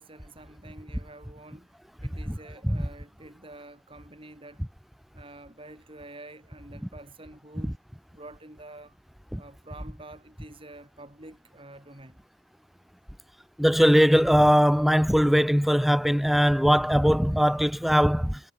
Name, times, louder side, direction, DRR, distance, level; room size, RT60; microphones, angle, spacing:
voice 1, 0.0-1.7 2.0-4.6 5.1-7.8 8.1-9.0 9.4-12.2, right 2 dB, 30° right, 4.7 m, -47 dB
voice 2, 13.6-18.4, equal, ahead, 0.4 m, -20 dB
head